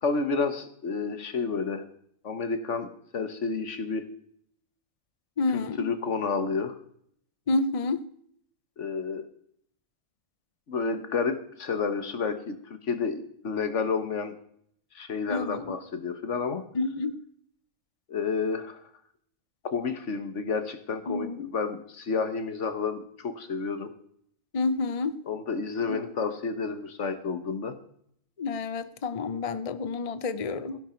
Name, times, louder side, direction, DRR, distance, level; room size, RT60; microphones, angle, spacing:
voice 1, 0.0-1.8 2.2-4.0 5.5-6.7 8.8-9.3 10.7-12.6 12.8-14.3 14.9-16.6 18.1-18.8 19.7-23.9 25.3-27.8, left 5 dB, 60° left, 10 dB, 1.6 m, -30 dB
voice 2, 5.4-5.9 7.5-8.0 15.3-15.7 16.7-17.2 21.1-21.5 24.5-25.1 25.9-26.0 28.4-30.8, left 3 dB, 35° left, 13 dB, 0.6 m, -29 dB
16.0 x 11.0 x 4.5 m, 0.67 s
omnidirectional pair, 1.5 m